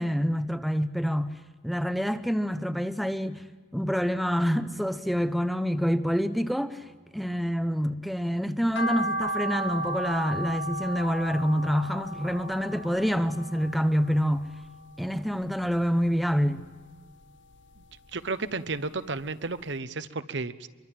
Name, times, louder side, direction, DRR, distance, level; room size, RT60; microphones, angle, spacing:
voice 1, 0.0-1.3 1.6-3.4 3.7-6.9 7.1-14.5 15.0-16.6, equal, ahead, 0.7 m, -27 dB
sound 1, 8.7-15.1 15.4-16.6 16.9-18.3 18.7-18.8 19.3-19.4 19.6-19.7, right 1 dB, 60° left, 1.0 m, -35 dB
voice 2, 18.1-20.7, right 3 dB, 60° right, 0.9 m, -32 dB
25.0 x 23.5 x 7.5 m
head